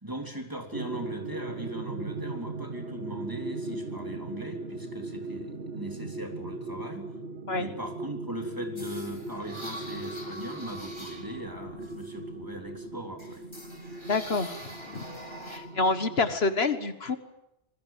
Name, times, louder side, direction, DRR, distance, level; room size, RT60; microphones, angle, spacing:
voice 1, 0.0-7.1 7.6-13.4, right 1 dB, 20° right, 3 dB, 3.6 m, -39 dB
sound 1, 0.7-16.3, right 2 dB, 70° right, 1.6 m, -38 dB
sound 2, 8.8-12.7 13.2-15.6, equal, 25° left, 4.4 m, -44 dB
voice 2, 14.1-14.5 14.9-15.1 15.5-17.2, left 3 dB, 75° left, 10 dB, 1.8 m, -27 dB
27.0 x 21.5 x 7.6 m, 0.84 s
omnidirectional pair, 1.1 m